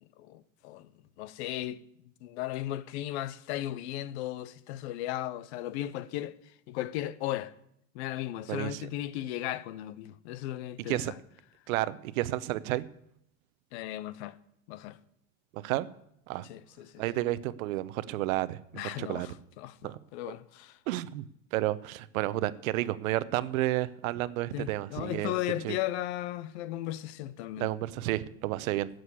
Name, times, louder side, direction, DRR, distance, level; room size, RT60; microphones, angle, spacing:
voice 1, 0.0-0.9 1.2-1.8 2.2-7.5 7.9-11.2 13.7-14.4 14.7-15.0 16.4-17.0 18.7-20.8 24.5-27.7, left 14 dB, 55° left, 0.7 m, -36 dB
voice 2, 8.5-8.8 10.9-11.1 11.7-12.9 15.5-15.9 16.3-16.5 17.0-19.3 19.8-20.0 20.3-20.4 20.9-21.3 21.5-25.3 25.6-25.8 27.6-28.9, right 16 dB, 85° right, 0.9 m, -31 dB
13.0 x 7.9 x 8.3 m
supercardioid pair, 175°, 40 cm